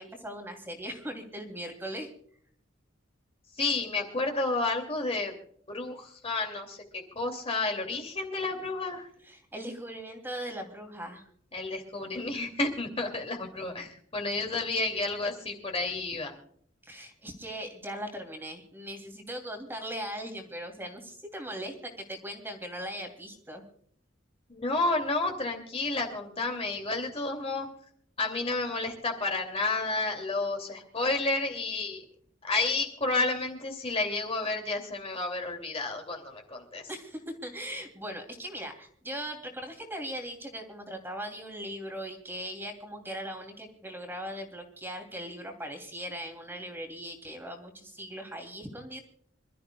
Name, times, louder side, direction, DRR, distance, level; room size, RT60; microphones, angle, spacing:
voice 1, 0.0-2.1 9.2-11.3 16.8-23.6 36.9-49.0, equal, 10° right, 3 dB, 2.8 m, -39 dB
voice 2, 3.6-5.3 5.7-9.1 11.5-16.3 24.5-27.7 28.2-32.0 32.4-36.9, left 3 dB, 30° left, 3 dB, 2.6 m, -31 dB
27.0 x 13.5 x 2.3 m, 0.63 s
head